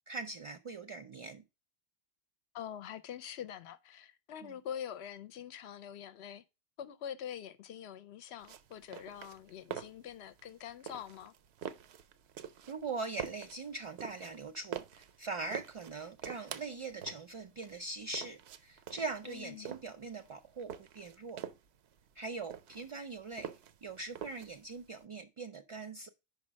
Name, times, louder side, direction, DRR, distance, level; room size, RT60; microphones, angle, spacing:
voice 1, 0.1-1.4 4.4-4.5 12.7-21.4 22.2-23.5 23.8-26.1, right 3 dB, 50° right, 0.4 m, -42 dB
voice 2, 2.5-6.4 6.8-11.3 19.2-19.7, left 9 dB, 90° left, 0.9 m, -45 dB
sound 1, 8.4-25.0, right 9 dB, 90° right, 0.9 m, -47 dB
5.3 x 4.9 x 6.1 m
omnidirectional pair, 1.1 m